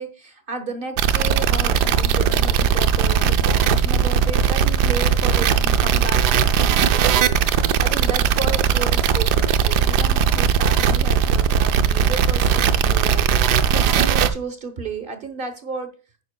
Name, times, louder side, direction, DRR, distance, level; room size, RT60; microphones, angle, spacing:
voice 1, 0.0-15.9, right 4 dB, 40° right, 9 dB, 0.9 m, -33 dB
sound 1, 1.0-14.3, right 7 dB, 75° right, 1.2 m, -18 dB
9.7 x 9.3 x 2.2 m, 0.36 s
omnidirectional pair, 1.8 m